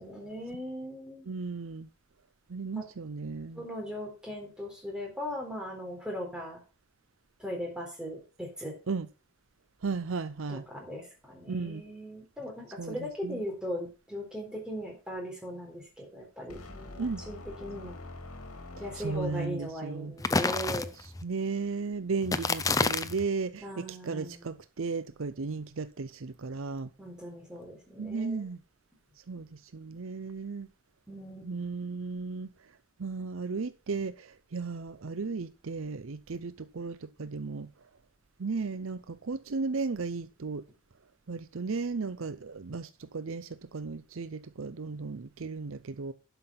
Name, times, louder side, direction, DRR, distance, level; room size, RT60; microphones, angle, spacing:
voice 1, 0.0-1.3 2.7-2.8 3.5-6.6 7.4-8.8 10.5-18.0 18.8-20.9 23.6-24.5 27.0-28.4 31.1-31.7, equal, 5° right, 3.9 m, -39 dB
voice 2, 1.3-1.9 2.5-3.6 8.9-9.1 9.8-10.6 11.5-11.8 12.8-13.0 13.2-13.4 17.0-17.2 19.0-20.1 21.2-26.9 28.0-28.6 29.3-30.7 31.5-32.5 33.0-37.7 38.4-40.6 41.3-46.1, right 4 dB, 65° right, 0.6 m, -35 dB
sound 1, 16.5-19.7, left 2 dB, 80° left, 2.1 m, -45 dB
sound 2, 20.2-21.2 22.2-23.2, left 3 dB, 15° left, 0.5 m, -28 dB
11.5 x 5.8 x 5.8 m
head